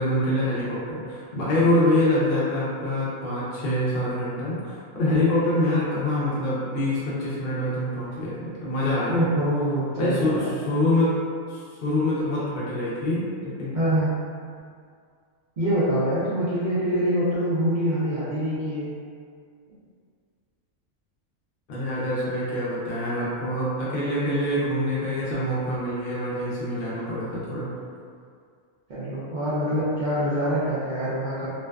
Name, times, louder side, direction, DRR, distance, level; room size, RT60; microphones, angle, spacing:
voice 1, 0.0-9.2 10.0-11.1 11.5-13.7 21.7-27.7, left 1 dB, 65° left, -8 dB, 0.5 m, -25 dB
voice 2, 9.1-10.5 13.7-14.1 15.6-18.9 28.9-31.5, equal, 75° right, -11 dB, 0.4 m, -25 dB
2.5 x 2.2 x 2.2 m, 2.2 s
omnidirectional pair, 1.4 m